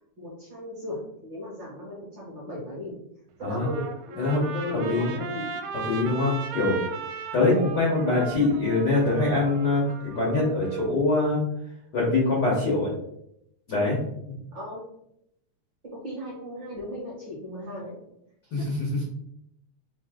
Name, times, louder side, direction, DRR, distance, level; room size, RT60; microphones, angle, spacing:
voice 1, 0.2-3.0 3.4-5.5 7.4-7.6 14.5-14.8 15.9-17.9 18.6-18.7, left 1 dB, 50° right, -4 dB, 1.4 m, -36 dB
Trumpet, 3.4-10.9, right 5 dB, 80° right, 2.0 m, -38 dB
voice 2, 5.8-6.8 7.3-9.8 10.1-11.4 11.9-12.9 13.7-14.0 14.3-14.4 18.5-18.8, left 2 dB, 80° left, -4 dB, 0.9 m, -23 dB
4.6 x 2.7 x 3.6 m, 0.77 s
omnidirectional pair, 3.6 m